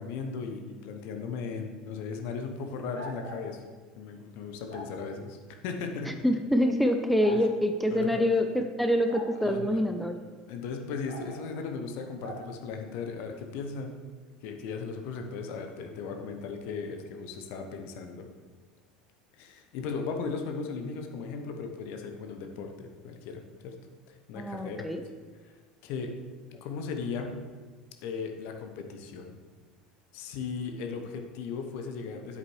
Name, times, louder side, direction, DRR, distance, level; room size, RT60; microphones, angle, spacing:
voice 1, 0.0-3.6 4.0-5.4 5.6-6.3 7.2-7.4 7.9-8.3 9.4-9.8 10.5-14.0 14.4-18.3 19.3-23.7 24.1-24.9 25.4-25.5 25.8-26.1 26.6-27.4 28.0-29.4 30.1-32.4, left 5 dB, 50° left, 4 dB, 0.9 m, -37 dB
sound 1, 2.9-3.4 4.7-4.9 6.2-6.3 7.2-7.4 9.1-9.3 11.0-11.5 12.2-12.4, equal, 85° right, 2.0 m, -42 dB
voice 2, 6.2-10.1 24.4-25.0, equal, ahead, 5 dB, 0.5 m, -26 dB
8.2 x 7.2 x 3.2 m, 1.4 s
figure-of-eight pair, 70°, 4 cm